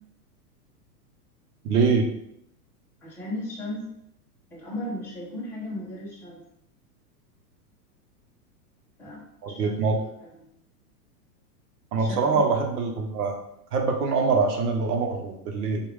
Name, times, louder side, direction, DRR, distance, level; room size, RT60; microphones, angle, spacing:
voice 1, 1.6-2.0 9.4-9.9 11.9-13.3 13.7-15.8, right 4 dB, 70° right, 2 dB, 0.9 m, -24 dB
voice 2, 3.0-3.8 4.5-6.4 9.0-9.2 9.5-10.1 12.0-12.4, left 1 dB, 5° left, -6 dB, 0.6 m, -36 dB
3.3 x 2.5 x 3.2 m, 0.75 s
supercardioid pair, 140°, 48 cm